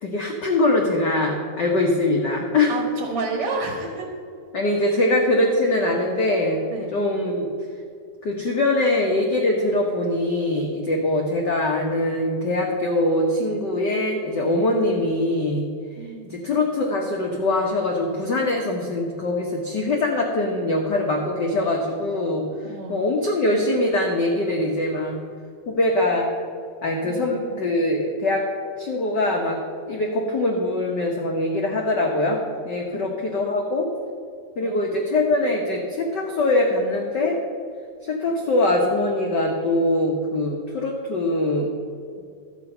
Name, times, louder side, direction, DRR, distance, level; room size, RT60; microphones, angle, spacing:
voice 1, 0.0-2.7 4.5-6.6 6.9-7.5 8.2-15.7 16.0-25.2 25.7-26.3 26.8-28.5 28.8-29.6 29.9-33.9 34.6-37.4 38.0-41.7, left 2 dB, 65° left, 0 dB, 1.0 m, -23 dB
voice 2, 2.7-4.1 4.8-5.0 6.7-6.9 16.0-16.5 22.6-23.0 27.0-27.7 34.6-34.8, right 3 dB, 55° right, 2 dB, 2.0 m, -31 dB
12.5 x 8.3 x 5.5 m, 2.3 s
omnidirectional pair, 3.5 m